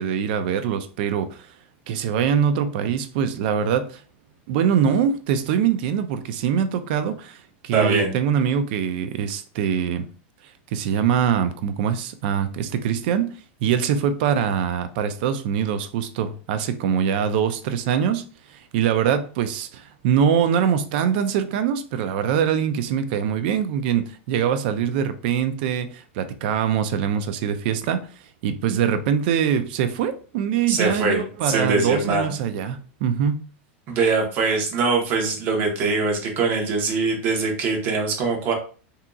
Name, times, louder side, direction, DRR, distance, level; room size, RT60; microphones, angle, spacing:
voice 1, 0.0-1.5 1.9-4.0 4.5-10.1 10.7-13.3 13.6-18.2 18.5-28.1 28.4-33.4, right 8 dB, 55° right, 0.4 m, -23 dB
voice 2, 7.7-8.1 30.7-32.3 33.9-38.5, right 4 dB, 35° right, 1.0 m, -22 dB
3.7 x 2.7 x 2.3 m
supercardioid pair, 160°, 6 cm